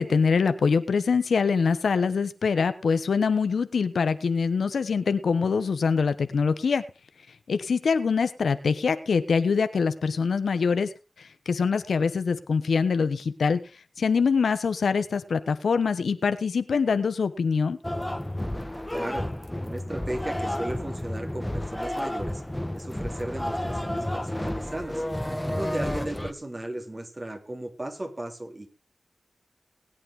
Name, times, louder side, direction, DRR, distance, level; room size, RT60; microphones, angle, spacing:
voice 1, 0.0-6.8 7.5-10.9 11.2-13.6 14.0-17.8, left 5 dB, 85° left, 12 dB, 1.0 m, -24 dB
sound 1, 17.8-26.3, left 1 dB, 10° left, 1.4 m, -31 dB
voice 2, 18.9-19.3 19.6-22.4 22.7-25.0 25.5-28.7, right 1 dB, 35° right, 4 dB, 3.4 m, -35 dB
20.0 x 8.9 x 3.7 m, 0.30 s
cardioid pair, 40°, 0 cm